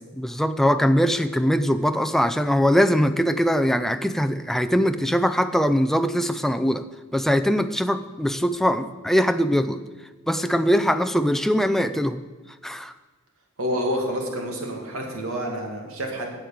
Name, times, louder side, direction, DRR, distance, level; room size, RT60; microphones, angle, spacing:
voice 1, 0.2-6.8 7.1-9.8 10.3-12.2 12.6-12.9, equal, ahead, 8 dB, 0.4 m, -21 dB
voice 2, 13.6-16.3, equal, 85° right, 1 dB, 2.3 m, -28 dB
9.0 x 7.8 x 8.5 m, 1.2 s
head